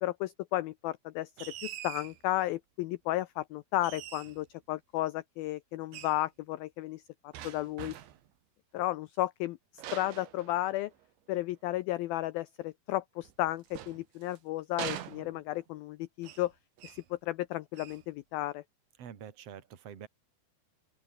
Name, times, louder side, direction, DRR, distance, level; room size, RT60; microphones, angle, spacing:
voice 1, 0.0-8.0 8.7-9.6 9.9-10.9 11.3-16.5 16.8-18.6, left 16 dB, 90° left, 2.1 m, -33 dB
sound 1, 1.4-2.2 3.8-4.5 5.9-6.2 7.3-8.3 9.8-11.1 13.2-14.4 14.8-15.7 16.2-16.5 16.8-17.1 17.7-18.1, right 12 dB, 80° right, 4.3 m, -43 dB
voice 2, 19.0-20.1, right 8 dB, 40° right, 2.9 m, -46 dB
open air
omnidirectional pair, 5.2 m